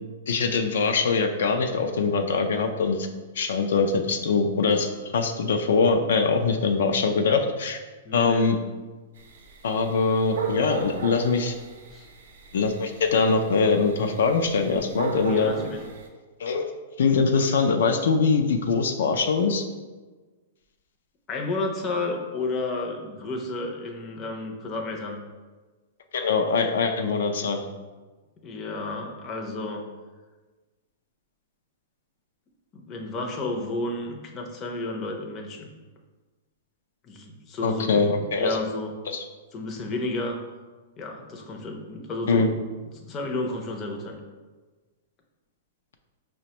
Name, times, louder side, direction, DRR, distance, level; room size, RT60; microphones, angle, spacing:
voice 1, 0.3-3.1 3.4-4.9 5.1-7.8 8.1-8.6 9.6-11.5 12.5-15.5 16.4-16.6 17.0-19.6 26.1-27.6 37.6-38.6 39.1-39.2 42.3-42.5, left 4 dB, 80° left, 5 dB, 0.3 m, -23 dB
voice 2, 8.0-8.5 11.9-12.1 15.3-15.8 21.3-25.2 28.4-29.9 32.7-35.7 37.0-38.9 39.5-40.4 41.0-42.5 42.9-44.2, left 2 dB, 20° left, 1 dB, 0.5 m, -32 dB
sound 1, 9.2-16.1, right 4 dB, 85° right, 0.5 m, -36 dB
5.0 x 2.1 x 2.8 m, 1.3 s
hypercardioid pair, 155°, 0 cm